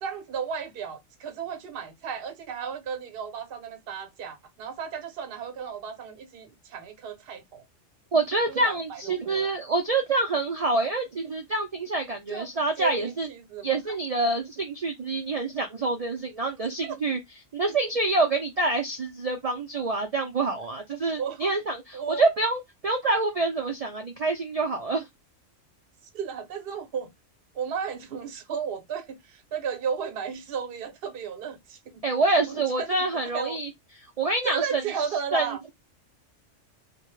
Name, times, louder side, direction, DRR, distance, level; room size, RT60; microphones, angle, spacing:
voice 1, 0.0-7.6 8.5-9.6 12.3-12.5 12.8-13.8 16.8-17.0 21.2-21.5 21.9-22.3 26.1-27.1 27.5-32.0 32.5-32.9 33.3-33.6 34.4-35.6, right 6 dB, 55° right, 0.8 m, -34 dB
voice 2, 8.1-13.3 13.6-17.2 17.5-25.1 32.0-33.7 34.2-34.8 35.3-35.5, right 3 dB, 75° right, 0.3 m, -26 dB
2.2 x 2.1 x 3.0 m
omnidirectional pair, 1.3 m